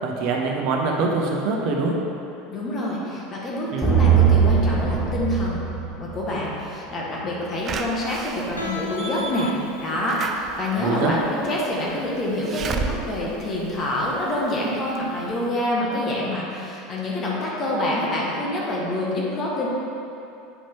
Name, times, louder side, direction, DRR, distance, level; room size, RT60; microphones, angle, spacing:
voice 1, 0.0-1.9 3.7-3.9 10.8-11.1, right 4 dB, 55° right, 1 dB, 0.9 m, -24 dB
voice 2, 2.5-5.7 5.9-9.5 9.8-19.7, left 1 dB, 35° left, -4 dB, 1.6 m, -26 dB
sound 1, 3.8-6.5, right 7 dB, 10° left, 1.6 m, -19 dB
Slam / Alarm, 7.7-14.5 14.9-15.0 15.3-15.4, right 4 dB, 35° right, 0.5 m, -33 dB
Guitar, 8.6-14.3, left 3 dB, 85° left, 0.6 m, -37 dB
8.5 x 5.0 x 3.7 m, 2.7 s
figure-of-eight pair, 75°, 0 cm